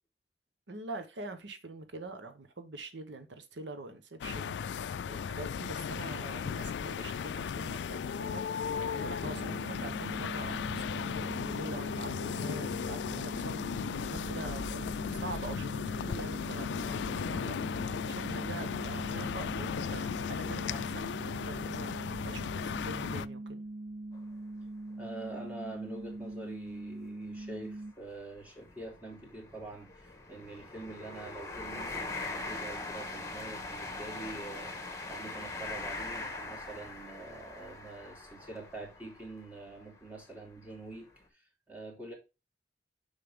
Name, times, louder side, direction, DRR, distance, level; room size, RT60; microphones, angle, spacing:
voice 1, 0.7-4.6 5.1-8.4 8.9-17.6 18.1-23.6, right 2 dB, 85° right, 1.0 m, -44 dB
sound 1, 4.2-23.3, left 7 dB, 75° left, 0.3 m, -36 dB
sound 2, 9.2-27.9, right 2 dB, 50° right, 0.5 m, -42 dB
sound 3, 24.1-24.3 24.9-25.0 26.1-26.3 26.5-26.7 27.4-40.1 40.7-40.8, left 3 dB, 15° left, 1.5 m, -42 dB
voice 2, 25.0-42.1, right 2 dB, 10° right, 2.5 m, -45 dB
6.9 x 5.7 x 3.6 m
head